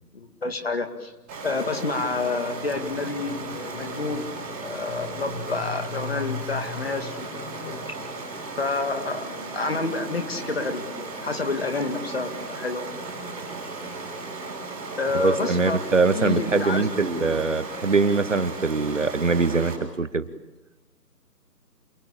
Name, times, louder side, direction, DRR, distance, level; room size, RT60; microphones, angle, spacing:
voice 1, 0.1-1.1 1.4-4.3 4.6-7.8 8.6-12.9 15.0-15.8 16.1-16.9 17.1-17.2, left 3 dB, 35° left, 7 dB, 2.2 m, -29 dB
sound 1, 1.0-19.4, left 3 dB, 85° left, 8.0 m, -43 dB
Stream, 1.3-19.7, right 3 dB, 5° right, 2.4 m, -36 dB
voice 2, 15.1-20.3, right 4 dB, 45° right, 11 dB, 1.3 m, -23 dB
28.0 x 20.5 x 8.6 m, 1.1 s
hypercardioid pair, 175°, 50 cm